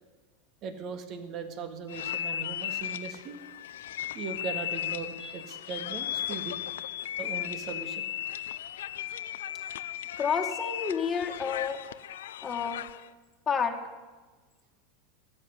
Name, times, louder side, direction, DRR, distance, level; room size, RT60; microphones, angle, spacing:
voice 1, 0.6-3.4 4.1-6.5 7.2-8.0, right 5 dB, 45° right, 8 dB, 2.0 m, -39 dB
sound 1, 1.9-13.1, left 11 dB, 85° left, 0.5 m, -36 dB
voice 2, 10.2-11.8 12.4-12.8 13.5-13.8, left 6 dB, 25° left, 3 dB, 1.8 m, -29 dB
13.0 x 8.6 x 9.7 m, 1.3 s
supercardioid pair, 120°, 0 cm